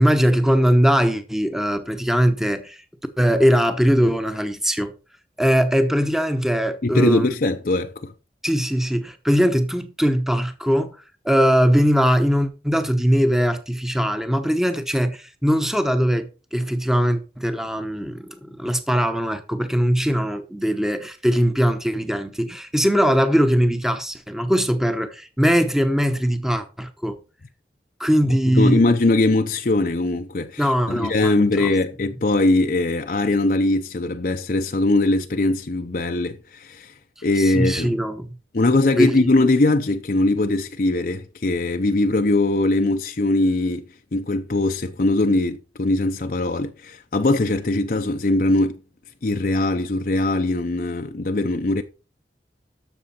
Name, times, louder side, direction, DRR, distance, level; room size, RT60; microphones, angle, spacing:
voice 1, 0.0-2.8 3.2-4.9 5.4-7.3 8.4-11.0 11.2-27.2 28.0-28.8 30.6-31.7 37.4-38.3 38.9-39.3, equal, 5° right, 0.9 m, -20 dB
voice 2, 6.8-8.1 28.5-36.9 37.2-37.9 38.5-43.8 44.1-48.8 49.2-51.8, left 2 dB, 50° left, 0.6 m, -21 dB
12.5 x 6.8 x 4.3 m
head